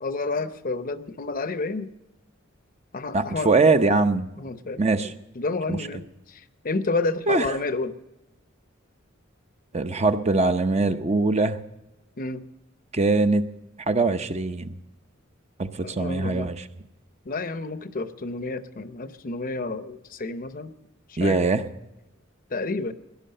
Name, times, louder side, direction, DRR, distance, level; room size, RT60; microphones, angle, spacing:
voice 1, 0.0-1.9 2.9-3.5 4.4-4.8 5.4-7.9 12.2-12.4 15.8-16.5 17.3-20.7 21.1-21.5 22.5-22.9, left 3 dB, 45° left, 12 dB, 0.7 m, -30 dB
voice 2, 3.1-4.3 4.8-5.1 5.7-5.8 7.3-7.6 9.7-11.6 12.9-13.4 13.9-14.8 15.6-16.6 21.2-21.6, right 3 dB, 30° right, 9 dB, 0.6 m, -22 dB
17.0 x 11.0 x 6.6 m, 0.95 s
head